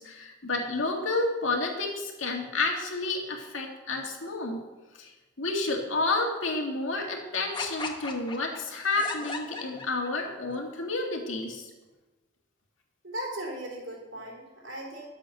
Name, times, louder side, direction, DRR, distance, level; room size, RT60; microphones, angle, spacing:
voice 1, 0.0-4.6 4.9-5.1 5.4-11.7, left 3 dB, 85° left, 1 dB, 2.1 m, -30 dB
sound 1, 7.5-10.3, left 3 dB, 25° left, 1.2 m, -37 dB
voice 2, 13.0-15.1, right 1 dB, 75° right, -2 dB, 3.6 m, -37 dB
12.0 x 7.4 x 6.6 m, 1.2 s
head